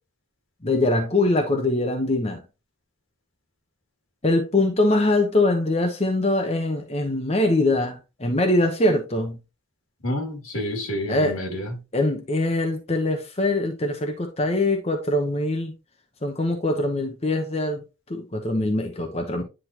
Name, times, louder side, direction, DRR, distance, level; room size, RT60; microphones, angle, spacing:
voice 1, 0.6-2.4 4.2-9.4 11.1-11.4 11.9-15.7 16.2-17.8 18.1-19.4, left 2 dB, 30° left, 0.9 m, -23 dB
voice 2, 10.0-11.8, left 1 dB, 85° left, 2.6 m, -29 dB
10.0 x 3.8 x 2.9 m
head